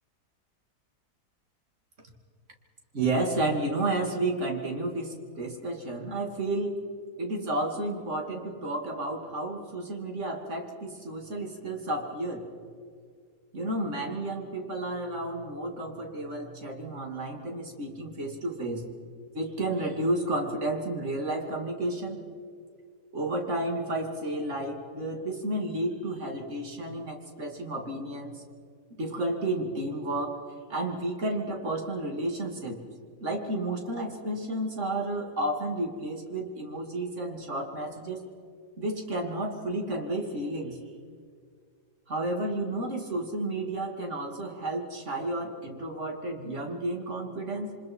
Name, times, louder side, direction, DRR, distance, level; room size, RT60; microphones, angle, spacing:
voice 1, 2.9-6.8 7.2-12.5 13.5-18.9 19.3-22.2 23.1-28.4 29.0-30.4 30.7-32.8 33.2-38.3 38.8-40.8 42.1-47.8, right 2 dB, 45° right, 2 dB, 2.8 m, -31 dB
28.5 x 25.0 x 4.5 m, 2.1 s
omnidirectional pair, 1.8 m